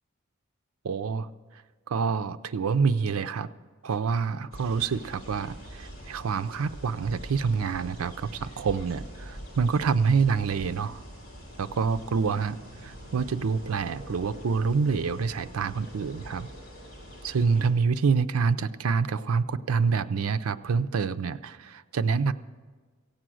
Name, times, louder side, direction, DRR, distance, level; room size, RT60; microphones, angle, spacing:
voice 1, 0.8-1.3 1.9-3.5 3.8-11.0 11.6-16.5 17.2-22.3, right 5 dB, 85° right, 12 dB, 0.5 m, -27 dB
sound 1, 4.5-17.7, equal, 45° left, 3.4 m, -44 dB
15.5 x 8.8 x 6.2 m, 1.4 s
head